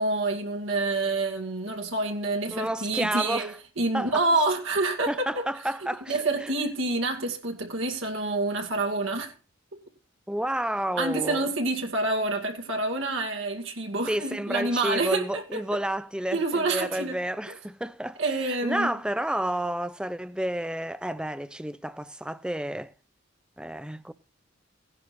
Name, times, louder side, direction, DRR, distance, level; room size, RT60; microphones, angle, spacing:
voice 1, 0.0-5.3 6.1-9.3 9.7-9.8 11.0-15.4 16.3-17.2 18.2-18.9, right 2 dB, 70° right, 2.4 m, -27 dB
voice 2, 2.5-3.5 3.9-4.2 5.1-6.5 10.3-11.5 14.1-22.9 23.6-24.1, right 1 dB, 5° right, 0.6 m, -30 dB
17.5 x 11.0 x 2.7 m
head